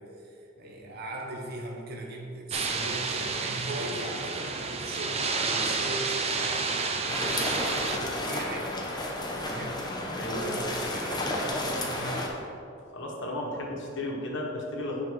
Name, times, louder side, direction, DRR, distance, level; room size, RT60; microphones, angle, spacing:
voice 1, 0.0-6.7 7.1-8.8 9.4-9.8 10.3-12.4, right 2 dB, 55° right, -1 dB, 1.0 m, -38 dB
voice 2, 0.6-1.0 7.3-7.5 9.6-9.7 10.2-10.7 12.9-15.1, left 1 dB, 65° left, -2 dB, 1.5 m, -35 dB
sound 1, 2.5-8.0, right 4 dB, 30° right, 0.6 m, -30 dB
sound 2, 7.1-12.3, left 1 dB, 20° left, 1.0 m, -32 dB
7.8 x 5.4 x 4.7 m, 2.6 s
head